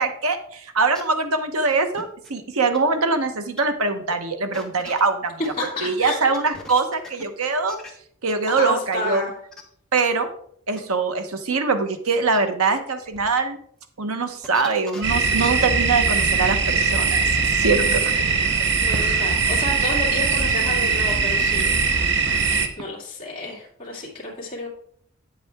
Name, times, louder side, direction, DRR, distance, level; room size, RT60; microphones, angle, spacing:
voice 1, 0.0-5.4 5.8-7.8 8.2-9.2 9.9-10.3 10.7-13.6 14.0-18.0, right 4 dB, 80° right, 8 dB, 1.0 m, -23 dB
sound 1, 0.9-1.0 2.0-2.4 2.7-2.8 3.2-3.3 3.6-3.7 4.1-4.2 4.5-5.6 6.0-7.2 7.7-7.9 8.3-8.7 9.1-9.2 9.5-9.6 10.0-10.1 10.8-10.9 11.5-11.6 12.1-12.4 13.1-13.3 14.4-15.0 15.4-15.6 15.9-16.0, left 1 dB, 5° left, 1.0 m, -40 dB
voice 2, 5.6-6.2 8.5-9.3 18.8-24.7, left 2 dB, 25° left, -6 dB, 2.4 m, -31 dB
sound 2, 15.0-22.7, right 5 dB, 50° right, 0.8 m, -21 dB
8.8 x 7.6 x 3.5 m, 0.65 s
head